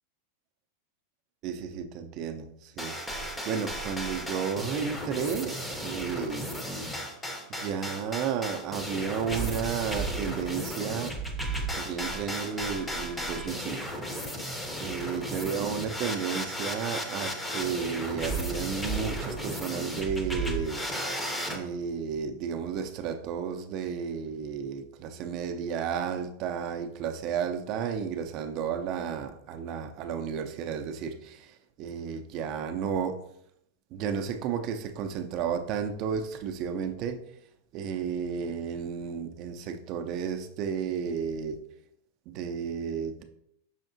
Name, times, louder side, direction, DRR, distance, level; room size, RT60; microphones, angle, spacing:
voice 1, 1.4-6.9 7.5-11.2 11.7-13.9 14.2-14.4 14.8-20.8 21.5-33.2 33.9-37.2 37.7-41.6 42.3-43.2, right 7 dB, 40° right, 0.5 m, -33 dB
sound 1, 2.8-21.6, right 1 dB, 10° left, 0.6 m, -34 dB
5.7 x 3.5 x 2.6 m
supercardioid pair, 145°, 0 cm